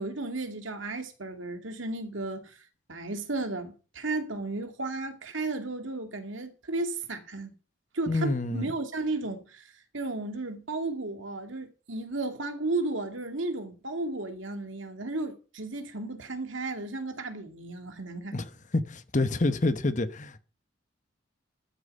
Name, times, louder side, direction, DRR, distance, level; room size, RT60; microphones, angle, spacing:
voice 1, 0.0-2.5 2.9-7.5 7.9-9.7 9.9-18.3, right 2 dB, 85° right, 2.4 m, -34 dB
voice 2, 8.1-8.7 18.3-20.4, left 2 dB, 40° left, 1.0 m, -28 dB
12.5 x 10.5 x 5.5 m
head